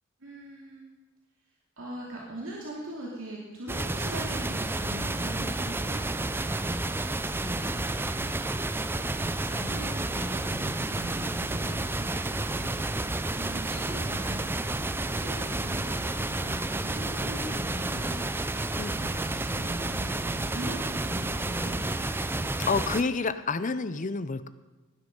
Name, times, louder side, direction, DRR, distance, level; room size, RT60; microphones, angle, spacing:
voice 1, 0.2-1.0 1.8-7.1 7.4-8.7 9.0-12.1 12.5-12.9 13.3-14.4 14.9-18.3 18.8-22.1 22.3-22.5, right 1 dB, 70° right, -4 dB, 2.8 m, -41 dB
sound 1, 3.7-23.0, right 2 dB, 10° right, 0.4 m, -31 dB
voice 2, 22.7-24.5, left 4 dB, 35° left, 13 dB, 0.6 m, -28 dB
18.5 x 10.0 x 5.4 m, 1.2 s
head